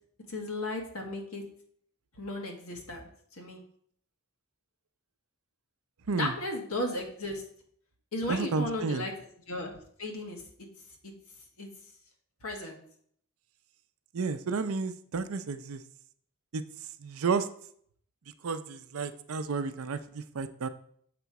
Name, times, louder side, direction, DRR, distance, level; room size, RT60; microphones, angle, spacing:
voice 1, 0.3-1.4 2.2-3.6 6.2-7.4 8.1-9.1 9.5-10.4 11.0-11.1 11.6-11.7 12.4-12.8, left 1 dB, 75° left, 1 dB, 1.5 m, -35 dB
voice 2, 8.3-9.1 14.1-15.8 16.5-16.6 17.0-17.5 18.4-20.7, right 4 dB, 70° right, 10 dB, 0.5 m, -31 dB
6.8 x 4.0 x 4.7 m, 0.63 s
head